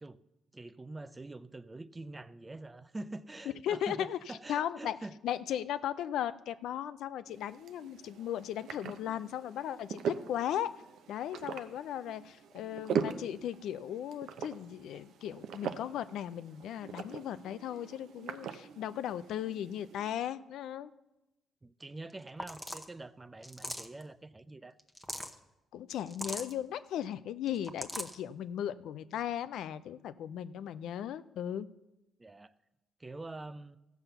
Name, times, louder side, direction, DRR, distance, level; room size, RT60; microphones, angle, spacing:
voice 1, 0.5-5.2 21.6-24.8 32.2-32.5 33.0-33.8, right 2 dB, 20° right, 14 dB, 0.5 m, -45 dB
voice 2, 3.6-5.0 5.2-10.7 11.1-20.9 25.7-31.7, left 10 dB, 80° left, 14 dB, 0.5 m, -37 dB
sound 1, 7.3-20.2, right 7 dB, 75° right, 0.7 m, -41 dB
sound 2, 22.1-22.2 22.4-22.9 23.4-24.0 24.8-25.3 26.1-26.5 27.5-28.2, equal, ahead, 0.9 m, -40 dB
14.5 x 5.7 x 6.8 m, 0.96 s
cardioid pair, 90°, 0 cm